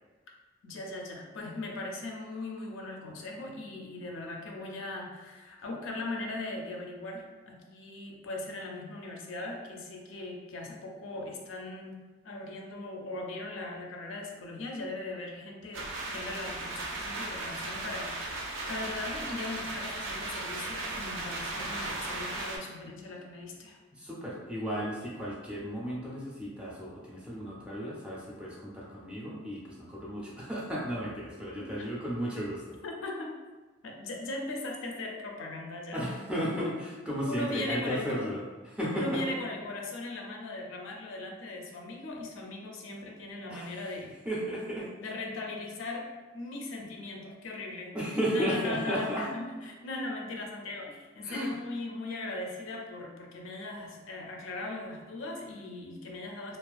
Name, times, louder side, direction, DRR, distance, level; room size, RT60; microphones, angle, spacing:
voice 1, 0.6-12.0 12.2-23.8 31.6-31.7 32.8-33.4 33.8-36.1 36.6-36.7 37.3-38.3 38.9-44.1 45.0-56.6, left 2 dB, 75° left, 1 dB, 0.4 m, -39 dB
sound 1, 15.7-22.6, right 2 dB, 75° right, 0.4 m, -36 dB
voice 2, 23.9-32.8 35.9-36.7 37.1-39.2 43.5-43.8 44.3-44.9 47.9-49.3 51.2-51.6, equal, 5° right, -5 dB, 0.4 m, -34 dB
2.4 x 2.3 x 2.3 m, 1.3 s
head